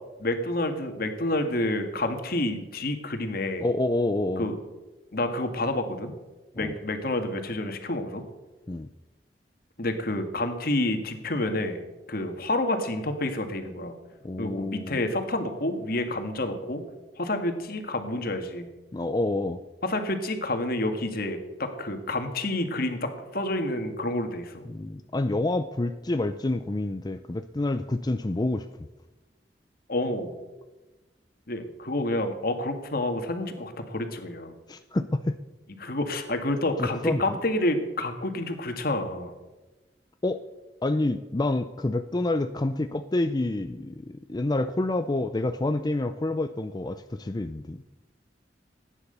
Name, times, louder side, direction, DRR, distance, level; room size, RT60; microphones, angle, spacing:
voice 1, 0.2-3.6 4.4-4.6 5.1-6.1 6.6-8.2 9.8-11.8 12.1-13.9 14.4-16.8 17.2-18.7 19.8-24.7 29.9-30.3 31.5-34.5 35.8-39.3, left 1 dB, 60° left, 6 dB, 1.9 m, -29 dB
voice 2, 3.6-4.5 6.6-6.8 8.7-8.9 14.2-15.1 18.9-19.6 24.7-28.7 34.7-35.4 36.8-37.4 40.2-40.4 40.8-47.8, left 2 dB, 25° left, 9 dB, 0.5 m, -28 dB
15.5 x 9.9 x 6.8 m, 1.1 s
head